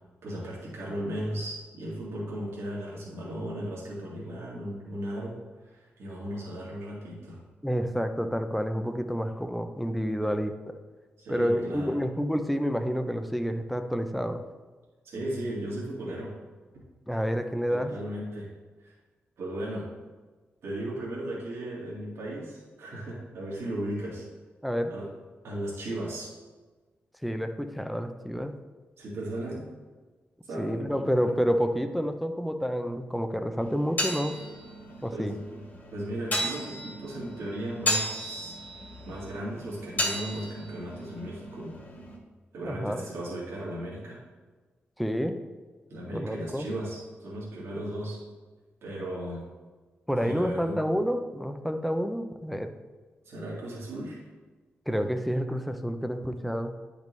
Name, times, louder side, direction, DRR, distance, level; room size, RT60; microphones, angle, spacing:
voice 1, 0.2-7.4 11.2-11.9 15.0-16.3 17.7-18.5 18.8-18.9 19.4-19.9 20.6-24.2 24.9-25.1 25.4-26.3 29.0-29.6 30.5-31.3 35.1-35.4 35.9-38.6 39.1-41.8 42.5-44.2 45.9-48.2 48.8-49.5 50.1-50.8 53.2-54.2, right 1 dB, 80° right, -5 dB, 2.0 m, -36 dB
voice 2, 7.6-10.8 11.3-14.4 17.1-17.9 24.6-24.9 27.2-28.6 30.6-34.4 35.0-35.3 42.6-43.0 45.0-45.4 46.1-46.7 50.1-52.7 54.9-56.7, equal, ahead, 7 dB, 0.4 m, -29 dB
sound 1, 33.6-42.2, left 1 dB, 45° left, 2.3 m, -34 dB
10.5 x 5.2 x 3.1 m, 1.3 s
wide cardioid pair, 175°, 4 cm